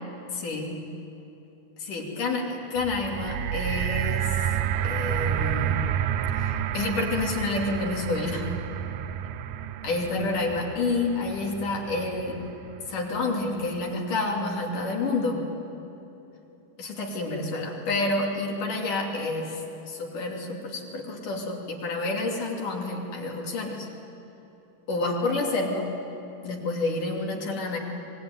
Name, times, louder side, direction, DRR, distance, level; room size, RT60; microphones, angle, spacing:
voice 1, 0.3-0.8 1.9-4.5 4.8-5.8 6.3-8.5 9.8-12.4 12.9-15.4 16.8-23.9 24.9-25.9 26.4-27.8, left 3 dB, 60° left, -1 dB, 4.3 m, -29 dB
sound 1, 2.8-13.0 13.7-13.8, right 10 dB, 75° right, 1.9 m, -30 dB
24.5 x 22.0 x 9.6 m, 3.0 s
omnidirectional pair, 4.3 m